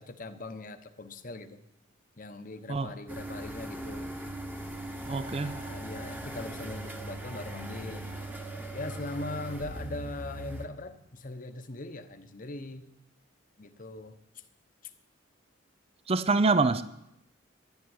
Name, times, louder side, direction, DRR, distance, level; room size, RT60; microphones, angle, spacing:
voice 1, 0.0-1.6 2.2-4.2 5.1-8.0 8.7-12.8 13.6-14.4 14.8-14.9, left 2 dB, 45° left, 8 dB, 1.0 m, -41 dB
sound 1, 3.1-10.7, right 1 dB, 10° right, 1.2 m, -39 dB
voice 2, 5.1-5.5 16.1-16.8, right 3 dB, 30° right, 14 dB, 0.5 m, -25 dB
11.0 x 11.0 x 9.6 m, 0.84 s
head